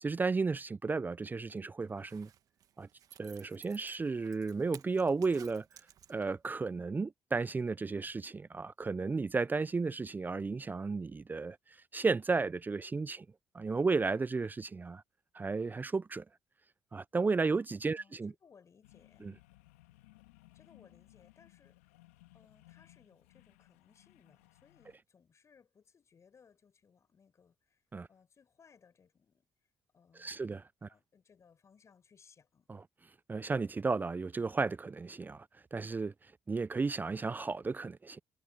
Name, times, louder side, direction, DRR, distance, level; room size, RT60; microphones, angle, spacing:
voice 1, 0.0-2.3 2.8-2.9 3.2-5.7 6.1-13.3 13.5-15.0 15.3-16.2 16.9-18.3 19.2-19.3 27.9-28.1 30.2-30.9 32.7-32.8 33.3-38.2, right 4 dB, 25° right, 0.6 m, -33 dB
Zipper (clothing), 1.9-6.5 6.8-6.9, right 10 dB, 60° right, 1.5 m, -56 dB
voice 2, 17.9-19.3 20.5-21.9 22.3-27.8 28.1-29.5 29.9-30.6 30.9-32.7, left 6 dB, 45° left, 6.0 m, -64 dB
sound 1, 18.8-25.0, left 19 dB, 85° left, 2.3 m, -62 dB
hypercardioid pair, 50°, 7 cm